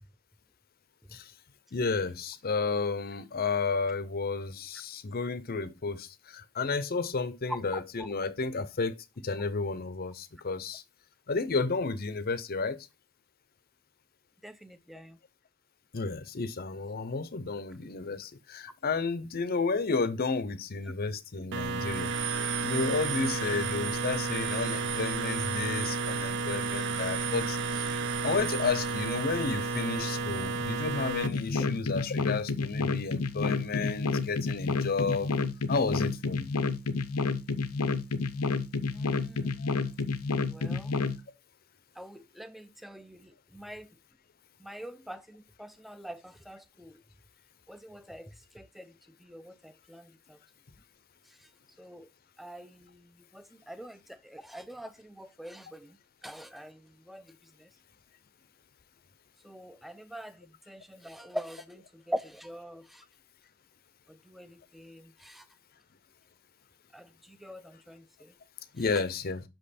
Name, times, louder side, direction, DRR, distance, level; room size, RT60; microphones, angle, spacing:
voice 1, 1.7-10.8 11.3-12.8 15.9-22.1 22.4-27.9 28.2-35.3 35.7-36.5 39.6-39.7 68.7-69.4, left 4 dB, 45° left, 0.6 m, -32 dB
voice 2, 14.4-15.2 31.6-31.7 38.9-39.6 40.5-40.9 42.0-43.9 44.6-47.0 47.7-48.9 49.2-50.4 51.8-52.1 52.4-56.0 56.2-57.7 59.4-63.0 64.1-65.4 66.9-68.3, equal, ahead, 0.4 m, -44 dB
sound 1, 21.5-31.3, right 4 dB, 55° right, 0.7 m, -32 dB
sound 2, 31.2-41.2, left 4 dB, 85° left, 0.7 m, -29 dB
5.9 x 5.4 x 4.1 m
head